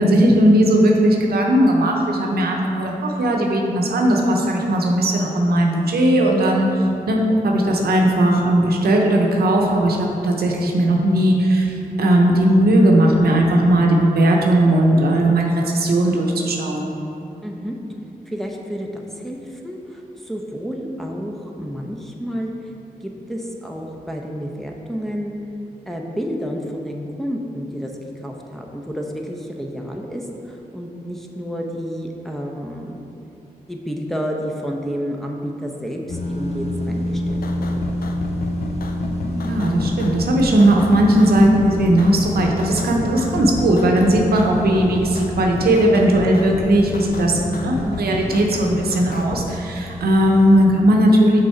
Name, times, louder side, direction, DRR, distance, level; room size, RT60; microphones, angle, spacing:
voice 1, 0.0-6.7 7.1-16.9 39.2-51.4, right 1 dB, 85° right, 0 dB, 0.7 m, -17 dB
voice 2, 17.4-17.7 18.3-22.7 23.0-25.3 25.9-27.9 28.2-33.0 33.7-37.8, equal, ahead, 0 dB, 0.8 m, -30 dB
sound 1, 36.1-50.6, left 1 dB, 45° left, 0.9 m, -29 dB
sound 2, 37.3-49.5, left 3 dB, 70° left, 0.5 m, -33 dB
6.1 x 4.0 x 4.4 m, 2.9 s
cardioid pair, 45°, 16 cm